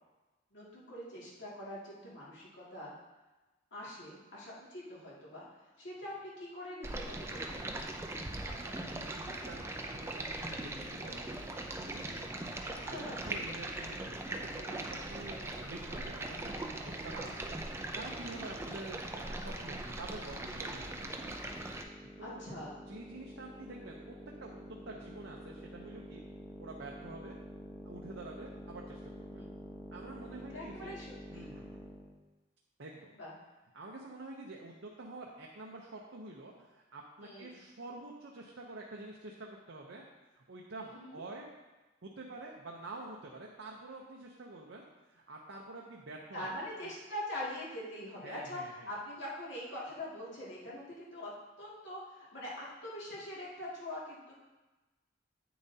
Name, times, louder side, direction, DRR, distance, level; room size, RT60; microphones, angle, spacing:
voice 1, 0.5-2.9 3.7-5.4 5.8-7.8 12.7-13.2 18.2-18.5 22.2-22.8 29.3-29.5 30.3-31.5 33.1-33.3 37.2-37.5 40.8-41.2 46.3-48.6 48.8-51.3 51.6-54.3, left 1 dB, 65° left, -7 dB, 2.2 m, -43 dB
Stream, 6.8-21.8, right 2 dB, 15° right, 0.4 m, -40 dB
voice 2, 8.4-9.7 9.9-12.3 12.7-21.5 22.0-22.5 22.9-26.2 26.6-27.4 27.8-29.5 29.9-31.0 31.3-31.8 32.8-33.1 33.7-40.0 40.3-41.5 42.0-46.6 48.2-48.9, right 2 dB, 75° right, -1 dB, 0.7 m, -48 dB
sound 1, 21.1-32.2, equal, 5° left, 0.8 m, -48 dB
8.7 x 7.0 x 2.8 m, 1.1 s
head